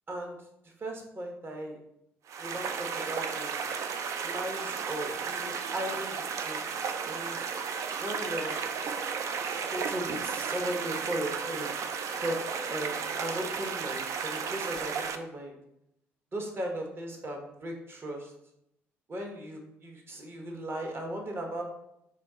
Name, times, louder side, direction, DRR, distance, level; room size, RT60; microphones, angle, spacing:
voice 1, 0.6-1.8 2.4-3.6 4.2-6.6 7.1-7.4 8.0-8.6 8.8-9.0 9.5-11.7 12.1-15.6 16.3-18.3 19.1-21.6, right 1 dB, 35° right, 2 dB, 1.0 m, -37 dB
sound 1, 2.3-15.2, right 6 dB, 50° right, 0.4 m, -34 dB
4.2 x 2.3 x 3.6 m, 0.82 s
hypercardioid pair, 50°, 7 cm